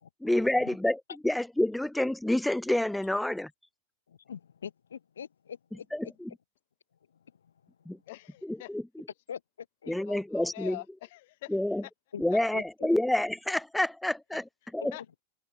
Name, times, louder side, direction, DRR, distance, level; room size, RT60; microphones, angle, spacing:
voice 1, 0.2-3.5 5.9-6.3 7.8-8.0 8.4-9.0 9.9-10.8 11.5-11.8 12.2-14.4 14.7-14.9, left 1 dB, 5° left, 6.5 m, -28 dB
voice 2, 4.1-5.8 9.3-9.4 9.8-9.9 12.1-12.2 12.5-12.6, left 8 dB, 70° left, 4.3 m, -42 dB
voice 3, 8.1-8.7 9.9-11.5 12.3-12.4 14.3-14.4 14.9-15.0, left 19 dB, 50° left, 7.3 m, -45 dB
figure-of-eight pair, 90°, 0 cm